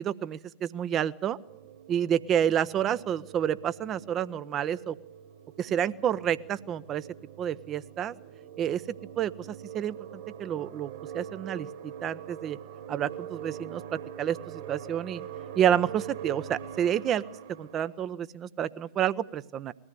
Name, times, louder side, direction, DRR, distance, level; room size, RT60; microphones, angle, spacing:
voice 1, 0.0-1.4 1.9-5.0 5.6-7.0 7.4-8.1 8.6-8.8 9.2-9.5 9.7-10.0 10.4-12.6 12.9-14.4 14.7-15.2 15.6-17.2 17.6-19.7, right 9 dB, 30° right, 17 dB, 0.7 m, -29 dB
sound 1, 1.5-18.0, right 8 dB, 60° right, 3.4 m, -44 dB
21.0 x 14.5 x 9.3 m, 0.92 s
figure-of-eight pair, 90°, 0 cm